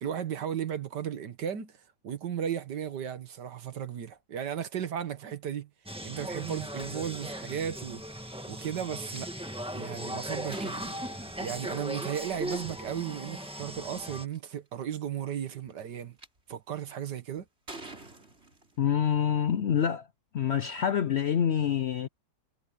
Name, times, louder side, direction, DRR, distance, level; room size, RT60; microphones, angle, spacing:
voice 1, 0.0-1.8 2.0-5.7 6.0-9.3 9.7-10.8 11.4-16.2 16.5-17.5, right 9 dB, 75° right, 1.9 m, -35 dB
sound 1, 5.9-14.3, equal, 5° right, 1.6 m, -38 dB
sound 2, 9.1-9.2 9.8-11.7 13.0-13.1 13.8-13.9 14.1-14.5 15.3-16.3 16.9-17.2 17.7-19.1, right 2 dB, 35° right, 4.5 m, -46 dB
voice 2, 18.8-20.1 20.3-22.1, left 8 dB, 70° left, 0.6 m, -26 dB
omnidirectional pair, 1.8 m